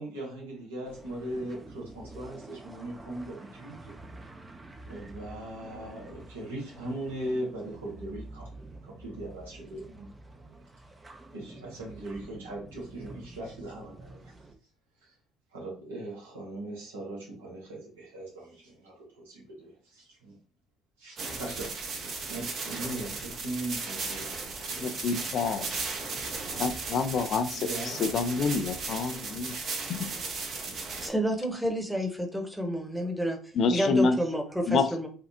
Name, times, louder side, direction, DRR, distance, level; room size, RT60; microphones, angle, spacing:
voice 1, 0.0-3.9 4.9-10.6 11.3-14.3 15.0-15.1 15.5-20.3 21.0-24.3 24.7-26.2 27.5-28.0, right 1 dB, 90° right, -3 dB, 1.1 m, -40 dB
sound 1, 0.8-14.6, right 2 dB, 20° right, 0.5 m, -48 dB
sound 2, 21.2-31.1, right 4 dB, 55° right, 0.8 m, -36 dB
voice 2, 24.8-25.6 26.6-29.6 29.9-30.1 33.5-34.2 34.7-34.9, left 4 dB, 55° left, 8 dB, 0.4 m, -27 dB
voice 3, 31.0-35.1, equal, 5° right, 3 dB, 0.9 m, -30 dB
3.4 x 2.3 x 2.7 m, 0.40 s
hypercardioid pair, 55°, 0 cm